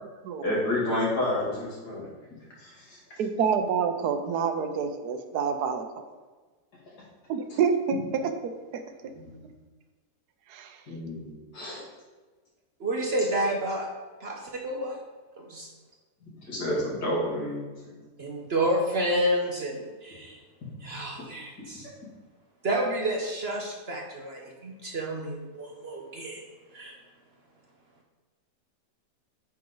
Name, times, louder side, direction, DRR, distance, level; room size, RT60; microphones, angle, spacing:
voice 1, 0.4-2.0 2.6-3.0 9.1-9.4 10.9-11.8 16.2-18.0, left 1 dB, 75° left, -6 dB, 3.0 m, -30 dB
voice 2, 3.2-6.0 7.3-8.3 8.7-9.1 10.5-10.8, right 6 dB, 80° right, 7 dB, 1.2 m, -28 dB
voice 3, 12.8-13.9 14.2-15.0 15.4-15.7 18.2-20.4 20.8-21.9 22.6-26.4 26.7-27.0, right 1 dB, 50° right, 1 dB, 0.9 m, -30 dB
8.7 x 5.2 x 3.8 m, 1.3 s
omnidirectional pair, 1.7 m